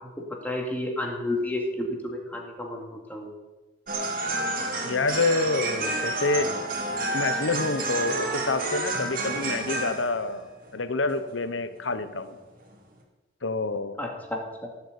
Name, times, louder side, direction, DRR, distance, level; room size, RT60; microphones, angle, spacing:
voice 1, 0.2-3.3 14.0-14.4, left 1 dB, 10° left, 1 dB, 2.4 m, -31 dB
sound 1, 3.9-10.4 10.6-10.7 11.1-11.5 11.9-12.0 12.3-12.4 12.7-12.8, right 2 dB, 45° right, 3.1 m, -30 dB
voice 2, 4.8-6.5 7.1-10.5 10.7-12.4 13.4-14.0, left 3 dB, 80° left, 11 dB, 1.0 m, -27 dB
17.0 x 8.3 x 8.4 m, 1.2 s
head